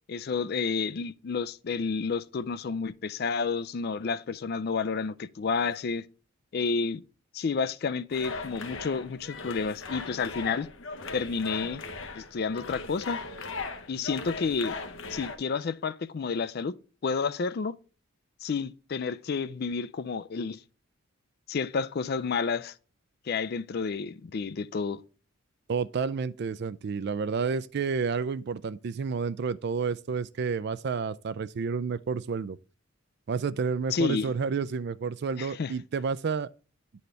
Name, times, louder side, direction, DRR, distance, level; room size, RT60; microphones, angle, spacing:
voice 1, 0.1-6.1 6.5-7.0 7.3-10.7 11.1-11.8 12.1-13.2 13.9-14.8 15.1-16.8 17.0-17.8 18.4-20.6 21.5-22.7 23.3-25.0 33.9-34.3 35.4-35.7, left 5 dB, 45° left, 0.4 m, -30 dB
sound 1, 8.1-15.4, left 3 dB, 65° left, 0.8 m, -38 dB
voice 2, 25.7-32.6 33.3-36.5, right 5 dB, 50° right, 0.3 m, -30 dB
9.4 x 4.2 x 3.2 m
head